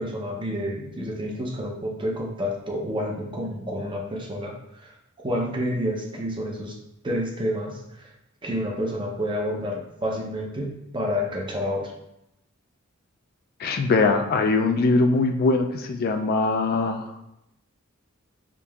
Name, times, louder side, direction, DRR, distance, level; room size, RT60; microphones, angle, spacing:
voice 1, 0.0-4.5 4.8-4.9 5.2-6.8 7.0-8.1 8.4-11.9, equal, 25° right, 0 dB, 0.6 m, -29 dB
voice 2, 13.6-17.1, left 3 dB, 45° left, 5 dB, 0.3 m, -22 dB
5.0 x 2.7 x 2.3 m, 0.83 s
head